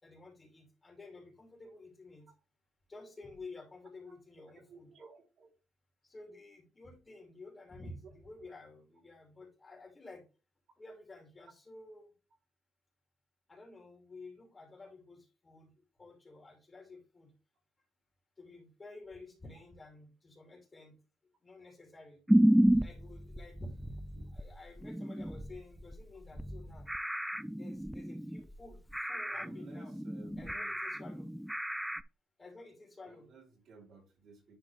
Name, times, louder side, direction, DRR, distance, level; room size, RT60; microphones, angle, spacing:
voice 1, 0.0-2.3 2.9-4.9 6.0-10.2 10.8-12.1 13.5-15.7 16.0-17.3 18.4-20.9 21.4-22.2 22.8-24.0 24.3-26.9 27.5-30.0 30.4-31.3 32.4-33.3, left 2 dB, 25° left, 2 dB, 2.9 m, -52 dB
voice 2, 4.7-5.5 14.8-14.9 24.1-24.3 24.9-25.0 29.3-30.7 33.0-34.6, right 4 dB, 70° right, -2 dB, 3.3 m, -57 dB
sound 1, 22.3-32.0, right 1 dB, 5° right, 0.3 m, -32 dB
10.0 x 3.8 x 3.3 m, 0.32 s
cardioid pair, 90°, 0 cm